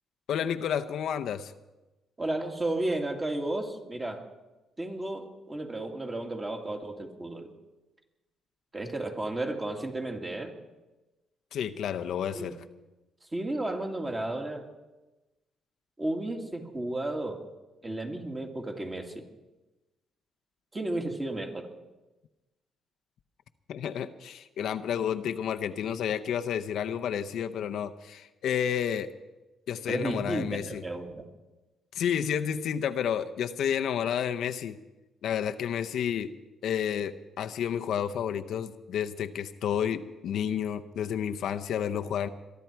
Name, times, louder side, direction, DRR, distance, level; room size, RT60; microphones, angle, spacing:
voice 1, 0.3-1.5 11.5-12.6 23.7-29.1 29.7-30.8 31.9-34.8 35.2-36.3 36.6-42.3, left 8 dB, 75° left, 8 dB, 0.7 m, -30 dB
voice 2, 2.2-4.3 4.8-7.5 8.7-10.5 12.3-12.5 13.3-14.7 16.0-17.4 17.8-19.2 20.7-21.7 29.9-31.3, right 2 dB, 25° right, 2 dB, 2.5 m, -33 dB
22.5 x 12.0 x 4.6 m, 1.1 s
cardioid pair, 90°, 0 cm